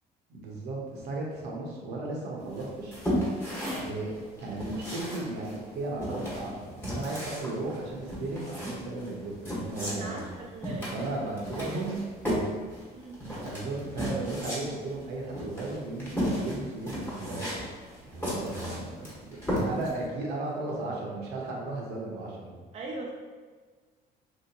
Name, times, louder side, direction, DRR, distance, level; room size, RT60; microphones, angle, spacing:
voice 1, 0.3-3.0 3.7-4.1 4.4-10.2 10.9-12.0 13.4-17.4 18.0-22.6, right 2 dB, 75° right, -2 dB, 0.8 m, -35 dB
sound 1, 2.5-20.0, equal, 10° left, 1.2 m, -34 dB
voice 2, 9.9-11.1 11.6-11.8 12.9-13.2 22.7-23.1, right 2 dB, 40° right, -1 dB, 0.4 m, -40 dB
3.0 x 2.8 x 2.8 m, 1.4 s
cardioid pair, 110°, 17 cm